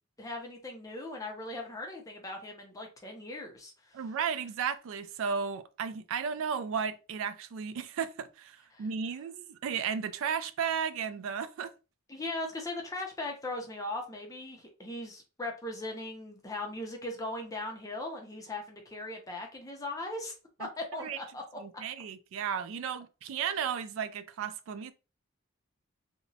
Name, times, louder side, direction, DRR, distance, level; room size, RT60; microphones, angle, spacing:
voice 1, 0.2-4.0 8.7-8.9 12.1-21.4, left 2 dB, 15° left, 0.5 m, -39 dB
voice 2, 3.9-11.7 20.6-20.7 21.0-21.2 21.6-24.9, right 7 dB, 65° right, 0.3 m, -34 dB
2.8 x 2.1 x 2.6 m
head